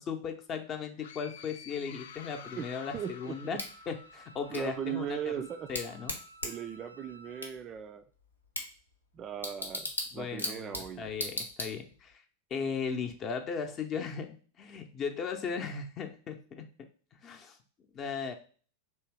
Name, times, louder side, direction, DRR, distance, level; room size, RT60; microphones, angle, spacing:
voice 1, 0.0-3.6 3.9-5.3 5.7-6.1 10.1-12.2 12.5-16.9 17.2-17.6 17.9-18.3, left 6 dB, 30° left, 5 dB, 0.7 m, -37 dB
sound 1, 1.0-4.7, left 8 dB, 55° left, 0.3 m, -50 dB
Wind instrument woodwind instrument, 2.2-7.6, right 2 dB, 80° right, 0.6 m, -55 dB
voice 2, 2.9-3.4 4.5-5.7 6.4-8.0 9.1-11.1, right 9 dB, 30° right, 10 dB, 0.3 m, -38 dB
Bicycle / Tick, 3.6-12.1, left 1 dB, 85° left, 0.9 m, -40 dB
3.3 x 3.2 x 4.6 m, 0.41 s
figure-of-eight pair, 90°, 0 cm